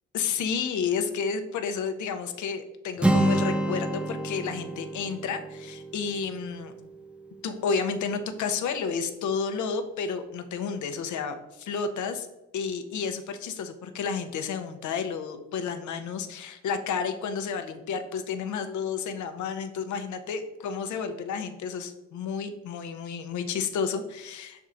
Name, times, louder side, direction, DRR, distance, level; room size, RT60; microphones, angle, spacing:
voice 1, 0.1-6.7 7.4-12.3 12.5-24.7, left 6 dB, 70° left, 8 dB, 0.8 m, -31 dB
Acoustic guitar, 3.0-6.9, right 1 dB, 5° right, 0.6 m, -28 dB
5.4 x 4.7 x 3.7 m, 0.95 s
cardioid pair, 90°, 30 cm